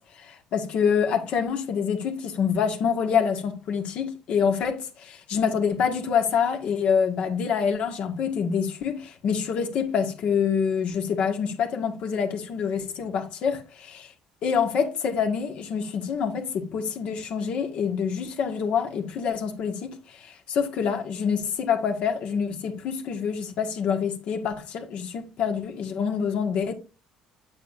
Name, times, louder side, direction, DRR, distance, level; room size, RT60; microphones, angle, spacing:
voice 1, 0.2-14.1 14.4-26.7, left 6 dB, 60° left, 1.5 m, -26 dB
8.6 x 7.3 x 2.6 m
cardioid pair, 95°, 2 cm